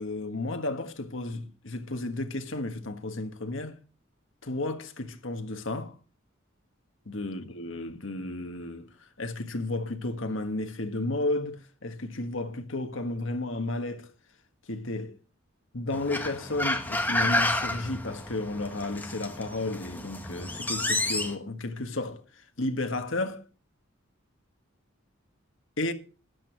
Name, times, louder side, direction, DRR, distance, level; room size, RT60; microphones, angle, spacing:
voice 1, 0.0-3.8 4.4-6.0 7.0-8.9 9.2-14.1 14.7-15.1 15.7-22.2 22.6-23.4 25.8-25.9, left 2 dB, 70° left, 1.6 m, -33 dB
sound 1, 15.9-21.3, left 2 dB, 10° left, 1.4 m, -30 dB
13.5 x 10.5 x 4.6 m
head